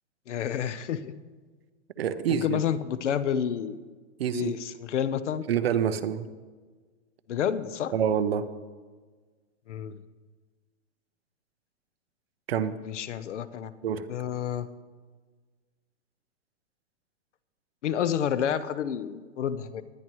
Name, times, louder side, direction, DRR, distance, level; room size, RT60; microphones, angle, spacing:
voice 1, 0.3-1.1 2.4-3.8 4.3-5.4 7.3-7.9 9.7-10.0 12.8-13.7 14.1-14.7 17.8-19.8, left 8 dB, 80° left, 14 dB, 0.9 m, -29 dB
voice 2, 2.0-2.6 4.2-4.5 5.5-6.3 7.9-8.5 12.5-12.8 13.8-14.0, right 8 dB, 60° right, 11 dB, 0.8 m, -26 dB
19.5 x 10.5 x 3.1 m, 1.4 s
hypercardioid pair, 175°, 35 cm